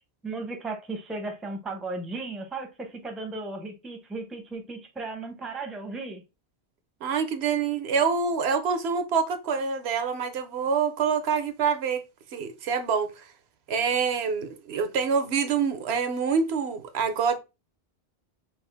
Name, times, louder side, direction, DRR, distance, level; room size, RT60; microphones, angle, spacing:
voice 1, 0.2-6.2, right 3 dB, ahead, 0.6 m, -35 dB
voice 2, 7.0-12.0 12.3-13.3 13.7-17.4, right 6 dB, 75° right, 0.9 m, -26 dB
5.6 x 2.5 x 3.3 m
omnidirectional pair, 1.1 m